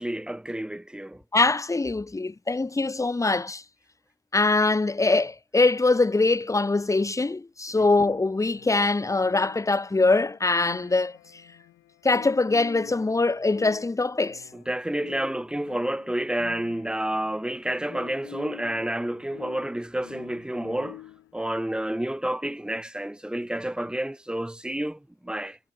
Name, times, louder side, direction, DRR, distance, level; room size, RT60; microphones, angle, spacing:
voice 1, 0.0-1.2 7.7-7.8 14.5-21.0 21.3-25.6, right 1 dB, 5° right, 2.0 m, -30 dB
voice 2, 1.3-3.6 4.3-11.2 12.0-14.4, left 3 dB, 15° left, 1.1 m, -23 dB
sound 1, 7.8-21.4, left 15 dB, 85° left, 1.8 m, -47 dB
cardioid pair, 90°, 20 cm